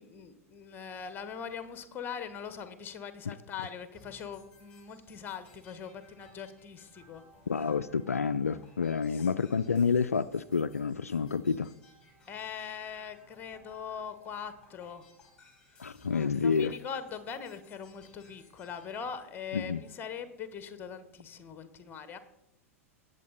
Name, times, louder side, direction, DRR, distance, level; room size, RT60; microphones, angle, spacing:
voice 1, 0.0-7.2 9.1-9.3 12.3-15.1 15.7-15.8 16.1-22.2, left 7 dB, 25° left, 12 dB, 1.3 m, -42 dB
sound 1, 3.9-19.9, left 2 dB, 10° left, 5.7 m, -61 dB
voice 2, 7.5-11.7 15.8-16.7 19.5-19.8, left 5 dB, 80° left, 14 dB, 0.4 m, -29 dB
19.0 x 7.4 x 4.1 m, 0.83 s
figure-of-eight pair, 95°, 8 cm